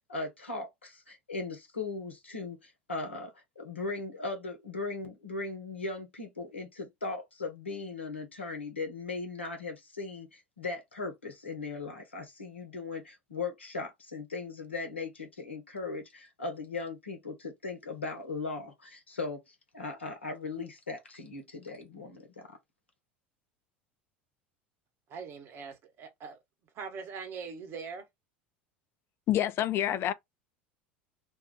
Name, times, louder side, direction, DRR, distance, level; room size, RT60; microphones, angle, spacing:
voice 1, 0.0-22.6, left 3 dB, 85° left, 1.0 m, -38 dB
voice 2, 25.1-26.4 26.7-28.1, right 5 dB, 45° right, 1.1 m, -42 dB
voice 3, 29.3-30.1, left 12 dB, 40° left, 0.5 m, -27 dB
2.6 x 2.3 x 3.7 m
figure-of-eight pair, 75°, 6 cm